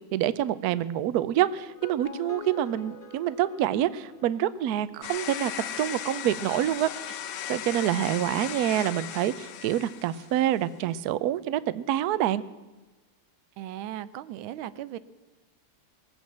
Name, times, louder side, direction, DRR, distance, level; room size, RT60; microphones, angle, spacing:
voice 1, 0.1-5.5 5.8-6.9 7.5-12.4, right 12 dB, 70° right, 15 dB, 0.9 m, -26 dB
sound 1, 1.6-4.7, left 2 dB, 40° left, 0.5 m, -44 dB
sound 2, 5.0-10.5, left 10 dB, 85° left, 1.7 m, -37 dB
voice 2, 13.6-15.0, right 12 dB, 85° right, 16 dB, 1.4 m, -37 dB
20.0 x 8.4 x 7.3 m, 1.2 s
omnidirectional pair, 2.2 m